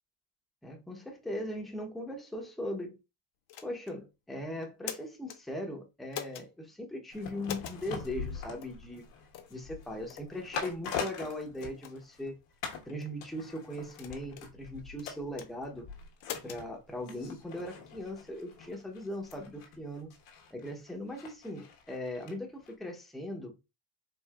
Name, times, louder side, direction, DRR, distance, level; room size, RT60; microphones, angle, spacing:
voice 1, 0.6-3.0 3.6-9.0 9.5-12.4 12.9-15.8 16.4-20.1 20.5-23.5, left 1 dB, ahead, 0.8 m, -39 dB
sound 1, 3.5-4.0 4.6-5.4 6.1-6.5 7.4-7.8 8.6-8.8 9.3-9.6 10.1-10.3 10.9-11.0 11.6-11.9 12.7-13.1 13.9-14.5 15.0-15.5 16.2-16.6, left 10 dB, 50° left, 0.7 m, -42 dB
sound 2, 7.1-12.3 12.6-12.9 13.2-22.3 22.6-22.7, left 6 dB, 85° left, 1.5 m, -43 dB
4.6 x 2.7 x 2.3 m
cardioid pair, 120°, 47 cm